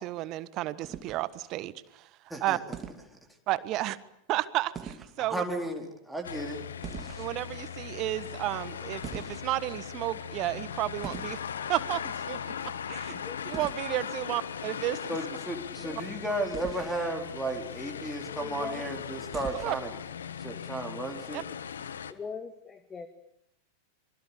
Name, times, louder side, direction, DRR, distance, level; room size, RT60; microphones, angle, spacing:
voice 1, 0.0-2.1 2.4-2.6 3.5-4.0 4.3-5.4 7.2-11.4 11.7-15.2 19.6-19.8 21.3-21.4, right 16 dB, 40° right, 17 dB, 1.4 m, -32 dB
sound 1, 0.8-1.5 2.7-3.1 4.7-5.2 6.8-7.5 9.0-9.7 11.0-11.4 13.5-13.8 16.5-17.0 19.3-19.9, right 7 dB, 25° right, 2.8 m, -42 dB
voice 2, 5.2-6.6 15.1-19.9 20.4-21.4, right 1 dB, ahead, 0 dB, 4.2 m, -34 dB
sound 2, 6.2-22.1, left 8 dB, 65° left, 1.5 m, -39 dB
voice 3, 13.2-13.6 15.8-16.0 17.4-17.5 17.9-18.9 19.6-19.8 22.1-23.1, left 5 dB, 20° left, 9 dB, 2.0 m, -42 dB
26.5 x 24.0 x 8.7 m, 0.75 s
figure-of-eight pair, 90°, 0 cm